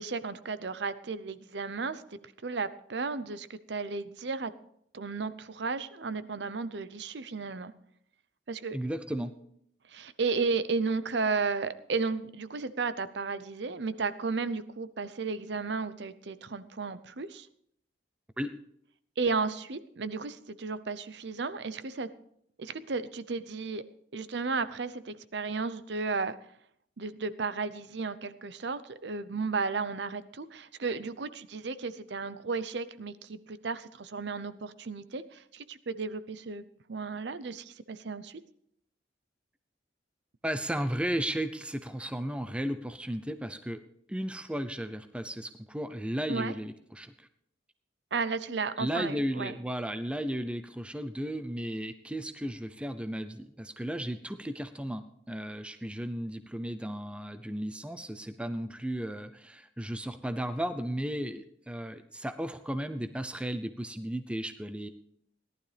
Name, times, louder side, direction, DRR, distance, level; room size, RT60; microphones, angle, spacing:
voice 1, 0.0-4.5 4.9-7.7 8.5-8.8 9.9-17.5 19.2-22.1 22.6-23.8 24.1-26.4 27.0-36.6 36.9-38.4 46.3-46.5 48.1-49.6, right 4 dB, 65° right, 14 dB, 0.7 m, -34 dB
voice 2, 8.7-9.3 18.4-18.6 40.4-43.8 44.1-47.3 48.8-64.9, equal, 5° right, 10 dB, 0.5 m, -35 dB
17.5 x 11.5 x 3.4 m, 0.71 s
head